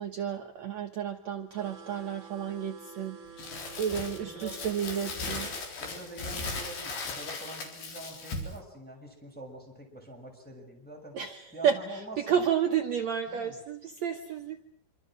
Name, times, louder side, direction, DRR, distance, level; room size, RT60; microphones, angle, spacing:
voice 1, 0.0-3.2 3.8-5.5 11.1-14.6, right 8 dB, 65° right, 5 dB, 1.8 m, -31 dB
sound 1, 1.5-5.7, right 7 dB, 30° right, 4.2 m, -49 dB
Crumpling crinkling, 3.4-8.6, left 3 dB, 75° left, 5.9 m, -37 dB
voice 2, 4.2-4.6 5.2-5.4 5.8-11.2 11.5-12.2 13.3-13.5, right 1 dB, ahead, 0 dB, 6.4 m, -45 dB
26.5 x 26.0 x 6.3 m, 0.66 s
omnidirectional pair, 4.5 m